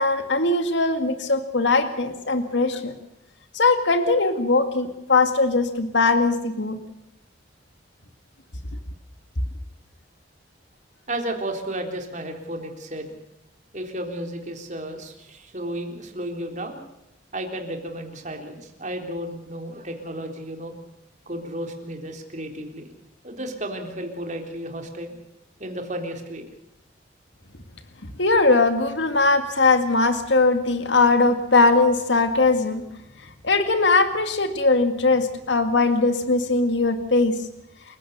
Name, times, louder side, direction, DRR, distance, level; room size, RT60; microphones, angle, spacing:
voice 1, 0.0-2.9 3.5-6.8 28.2-32.8 33.4-37.3, left 3 dB, 70° left, 8 dB, 2.0 m, -20 dB
voice 2, 11.1-13.1 13.7-16.8 17.3-20.7 21.3-22.9 23.2-25.1 25.6-26.4, right 1 dB, 40° right, 3 dB, 3.8 m, -33 dB
29.5 x 16.0 x 6.8 m, 0.87 s
head